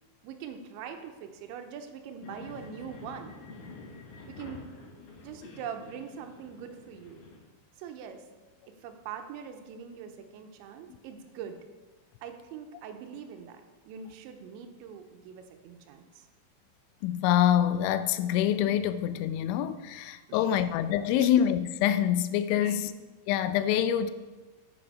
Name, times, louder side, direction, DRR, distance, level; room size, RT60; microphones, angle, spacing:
voice 1, 0.2-3.3 4.3-4.6 5.2-7.2 7.8-8.2 8.8-11.6 12.2-16.3 20.3-20.6 21.2-21.3 22.6-22.9, right 7 dB, 85° right, 3.1 m, -43 dB
sound 1, 2.2-7.4, left 3 dB, 60° left, 2.3 m, -48 dB
voice 2, 17.0-22.9 23.3-24.1, left 10 dB, 85° left, 2.9 m, -26 dB
9.2 x 8.7 x 4.9 m
omnidirectional pair, 5.3 m